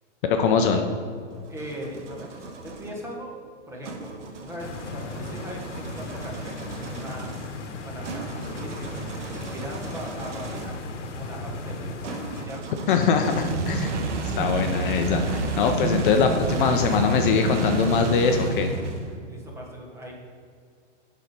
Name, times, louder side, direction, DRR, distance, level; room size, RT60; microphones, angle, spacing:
voice 1, 0.2-0.8 12.9-13.9 14.2-18.7, left 5 dB, 45° left, 5 dB, 0.5 m, -22 dB
sound 1, 1.1-2.9 3.8-10.8 12.0-19.3, right 3 dB, 80° right, 1.1 m, -31 dB
voice 2, 1.5-3.3 3.7-7.5 7.8-10.7 11.2-12.0 12.3-12.7 19.3-20.1, equal, 10° right, -2 dB, 0.9 m, -39 dB
Stream, 4.6-12.4, left 2 dB, 75° left, 1.0 m, -36 dB
5.8 x 4.2 x 5.0 m, 2.1 s
hypercardioid pair, 140°, 36 cm